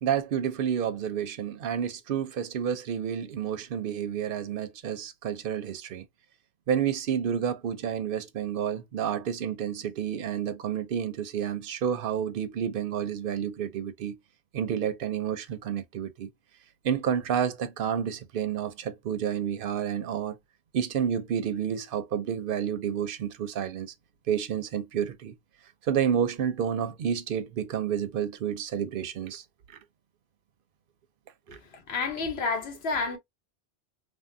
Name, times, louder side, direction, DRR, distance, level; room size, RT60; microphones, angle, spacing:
voice 1, 0.0-6.0 6.7-14.2 14.5-16.3 16.8-20.4 20.7-23.9 24.3-25.3 25.8-29.4 31.5-31.6, right 8 dB, 60° right, 0.7 m, -30 dB
voice 2, 31.7-33.2, left 4 dB, 70° left, 1.1 m, -30 dB
3.5 x 2.1 x 2.5 m
omnidirectional pair, 1.1 m